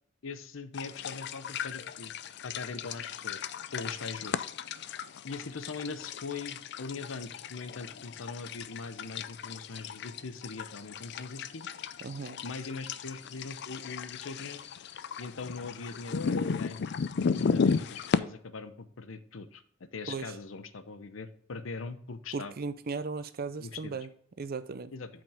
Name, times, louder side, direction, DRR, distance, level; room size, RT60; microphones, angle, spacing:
voice 1, 0.2-2.1 2.4-4.5 5.2-11.7 12.4-14.7 15.2-16.8 17.1-19.6 19.9-22.5 23.6-24.0 24.9-25.1, left 4 dB, 90° left, 0.8 m, -41 dB
sound 1, 0.7-18.2, left 5 dB, 60° left, 0.4 m, -35 dB
voice 2, 12.0-12.4 20.1-20.3 22.3-24.1 24.4-24.9, right 4 dB, 50° right, 0.5 m, -36 dB
8.8 x 5.3 x 3.5 m
head